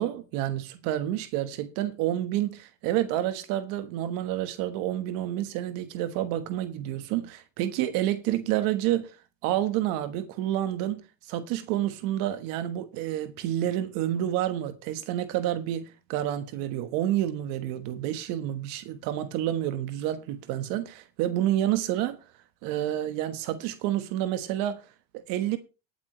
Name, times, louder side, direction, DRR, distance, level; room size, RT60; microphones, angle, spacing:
voice 1, 0.0-9.1 9.4-22.2 22.6-24.8 25.1-25.6, right 12 dB, 80° right, 1.4 m, -29 dB
18.5 x 8.6 x 3.1 m
supercardioid pair, 75°, 34 cm